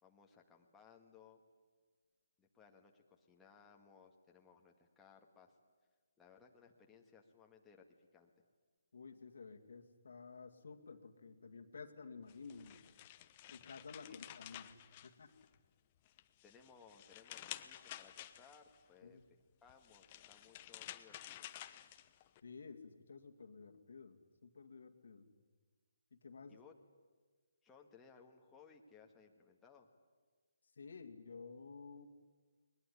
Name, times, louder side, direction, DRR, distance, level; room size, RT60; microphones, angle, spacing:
voice 1, 0.0-1.4 2.4-5.6 6.2-8.3 14.1-14.2 16.4-19.2 19.6-21.5 26.5-26.7 27.6-29.9, left 6 dB, 10° left, 0 dB, 1.8 m, -63 dB
voice 2, 8.9-12.9 13.5-15.4 19.0-19.3 22.4-25.3 26.1-26.6 30.7-32.1, left 4 dB, 65° left, 7 dB, 2.1 m, -53 dB
sound 1, 12.3-15.6 16.1-18.8 19.7-22.4, left 13 dB, 30° left, 1.0 m, -52 dB
20.5 x 20.5 x 10.0 m, 1.5 s
figure-of-eight pair, 150°, 0 cm